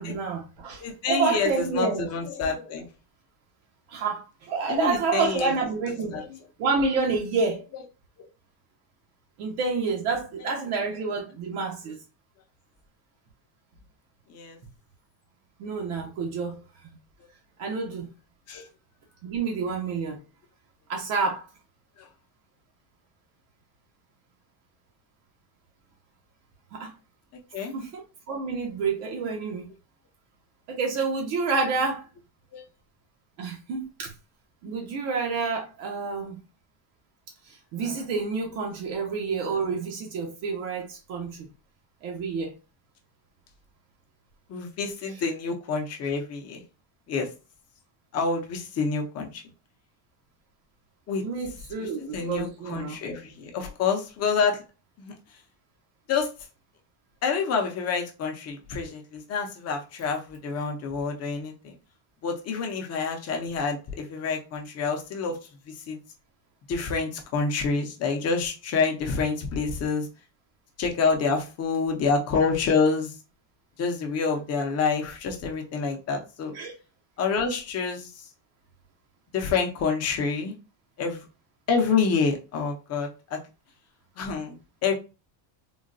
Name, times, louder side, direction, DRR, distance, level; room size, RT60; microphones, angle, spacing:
voice 1, 0.0-2.1 3.9-6.2 6.6-7.7 9.4-12.0 15.6-16.6 17.6-18.1 19.2-20.2 20.9-21.5 26.7-26.9 27.7-29.7 30.7-32.1 33.4-34.1 34.6-36.4 37.4-41.5 42.0-42.5 51.2-53.0 76.5-76.7, right 4 dB, 75° right, 1.0 m, -28 dB
voice 2, 0.8-2.9 4.7-5.5 6.1-6.2 14.3-14.6 18.5-18.7 22.0-22.1 27.5-27.7 32.5-32.6 44.5-46.6 47.1-47.3 48.1-49.4 51.1-51.2 51.8-54.6 55.0-55.1 56.1-56.3 57.2-61.8 62.2-65.4 65.7-66.0 66.7-70.1 70.8-73.1 73.8-76.5 77.2-78.1 79.3-80.5 81.0-81.2 81.7-83.4 84.2-84.6 84.8-84.9, left 5 dB, 30° left, 0.5 m, -27 dB
3.8 x 2.1 x 2.5 m
cardioid pair, 165°, 49 cm